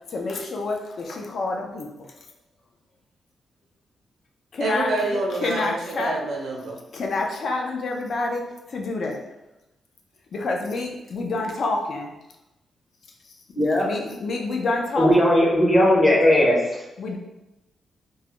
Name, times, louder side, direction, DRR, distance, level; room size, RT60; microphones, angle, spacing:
voice 1, 0.1-2.1 4.5-4.9 5.4-6.1 6.9-9.3 10.3-12.1 13.8-15.3 17.0-17.2, left 3 dB, 60° left, 1 dB, 0.4 m, -28 dB
voice 2, 4.6-6.8, right 2 dB, 75° right, -1 dB, 0.6 m, -27 dB
voice 3, 13.6-13.9 15.0-16.6, left 1 dB, 20° left, -3 dB, 0.6 m, -17 dB
2.2 x 2.0 x 2.9 m, 0.96 s
wide cardioid pair, 130°, 0 cm